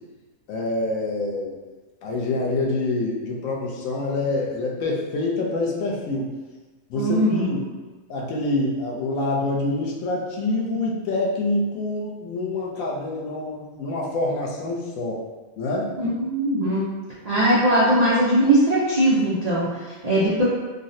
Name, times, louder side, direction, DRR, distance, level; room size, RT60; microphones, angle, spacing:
voice 1, 0.5-1.5 2.0-6.3 6.9-7.6 8.1-15.2 15.6-15.9, left 2 dB, 75° left, -2 dB, 1.0 m, -26 dB
voice 2, 6.9-7.6 16.0-16.8 17.2-20.4, right 1 dB, 75° right, -8 dB, 0.3 m, -20 dB
3.7 x 2.0 x 2.6 m, 1.3 s
omnidirectional pair, 1.5 m